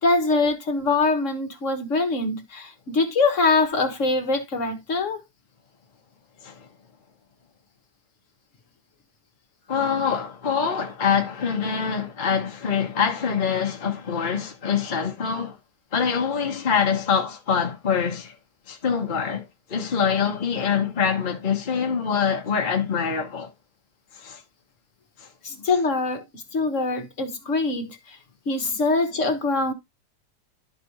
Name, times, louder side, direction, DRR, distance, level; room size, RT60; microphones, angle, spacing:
voice 1, 0.0-5.2 25.4-28.2 28.5-29.7, left 3 dB, 50° left, 1.4 m, -23 dB
voice 2, 9.7-15.6 15.9-18.3 18.7-23.5 24.1-24.4 25.2-25.3 28.6-28.7, left 6 dB, 35° left, 1.0 m, -25 dB
12.0 x 4.2 x 2.9 m
omnidirectional pair, 1.8 m